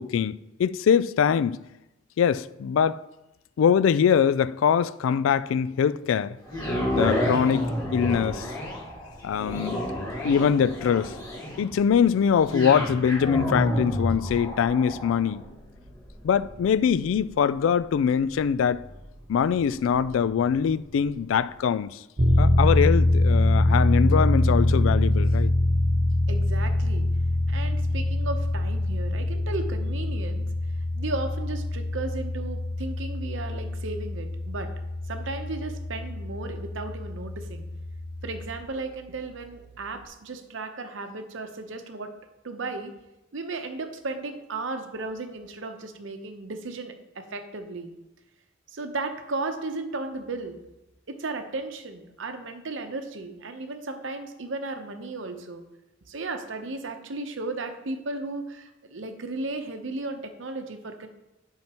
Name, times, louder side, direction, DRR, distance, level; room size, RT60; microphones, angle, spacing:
voice 1, 0.0-1.6 2.2-3.0 3.6-6.4 6.9-8.4 9.2-9.8 10.2-11.1 11.6-15.4 16.2-18.8 19.3-21.9 22.4-25.5, left 7 dB, 75° left, 0.3 m, -23 dB
sound 1, 6.5-20.7 21.2-21.3, left 1 dB, 20° left, 1.9 m, -31 dB
sound 2, 22.2-38.5, left 1 dB, 45° right, 1.0 m, -24 dB
voice 2, 26.3-27.1 27.5-30.4 30.9-34.7 35.1-37.7 38.2-42.1 42.4-42.9 43.3-47.9 48.7-50.6 51.1-55.6 56.1-61.1, right 3 dB, 65° right, 0.8 m, -35 dB
10.5 x 5.7 x 2.9 m
head